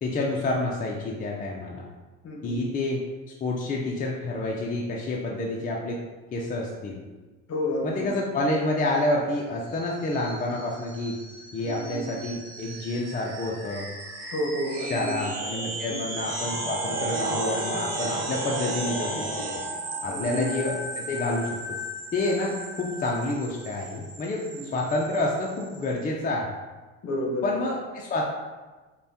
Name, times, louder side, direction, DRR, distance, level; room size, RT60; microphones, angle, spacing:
voice 1, 0.0-1.8 2.4-6.0 6.3-7.0 7.8-11.2 11.5-13.9 14.9-19.3 19.5-19.6 20.0-21.6 22.1-24.4 24.7-26.5 27.4-28.3, left 2 dB, 25° left, -2 dB, 0.5 m, -28 dB
voice 2, 2.2-2.6 7.5-8.1 11.6-12.0 14.3-15.1 15.9-16.0 20.1-20.5 24.5-24.7 27.0-27.5, left 1 dB, 45° left, 1 dB, 0.9 m, -30 dB
sound 1, 9.7-25.9, right 1 dB, 45° right, 1.1 m, -34 dB
5.3 x 2.3 x 2.7 m, 1.3 s
supercardioid pair, 80°, 35 cm